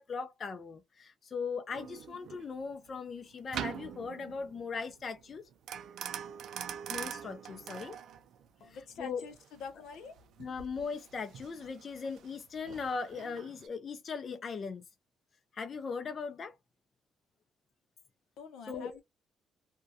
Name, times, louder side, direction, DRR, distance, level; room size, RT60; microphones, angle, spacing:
voice 1, 0.0-5.5 6.9-8.0 8.7-9.3 10.4-14.8 15.5-16.5 18.7-19.0, left 5 dB, 45° left, 0.4 m, -39 dB
sound 1, 1.7-13.7, right 9 dB, 75° right, 0.3 m, -44 dB
voice 2, 8.6-10.2 18.4-19.0, left 5 dB, 80° left, 0.6 m, -46 dB
2.3 x 2.1 x 2.5 m
cardioid pair, 90°, 0 cm